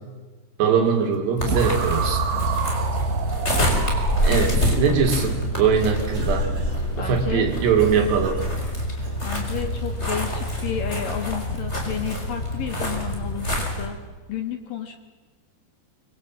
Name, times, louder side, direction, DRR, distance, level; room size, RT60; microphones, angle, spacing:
voice 1, 0.6-2.2 4.2-6.5 7.0-8.4, right 6 dB, 65° right, 4 dB, 4.6 m, -21 dB
sound 1, 1.4-13.9, equal, 15° left, 4.3 m, -26 dB
sound 2, 1.5-4.7, right 6 dB, 85° right, 4.0 m, -28 dB
Cough, 4.8-5.6 6.1-6.9 7.8-9.4, right 2 dB, 40° right, 5.4 m, -42 dB
voice 2, 7.0-7.5 9.2-14.0 14.3-15.0, left 8 dB, 60° left, 6 dB, 2.6 m, -31 dB
25.0 x 24.0 x 7.4 m, 1.3 s
omnidirectional pair, 5.2 m